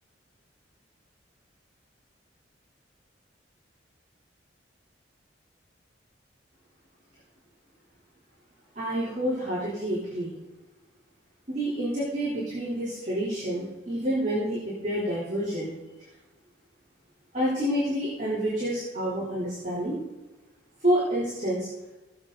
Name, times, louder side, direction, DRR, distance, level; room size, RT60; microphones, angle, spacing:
voice 1, 8.8-10.3 11.5-15.7 17.3-20.0 20.8-21.7, equal, 40° right, -9 dB, 3.5 m, -28 dB
18.5 x 7.4 x 4.0 m, 1.2 s
head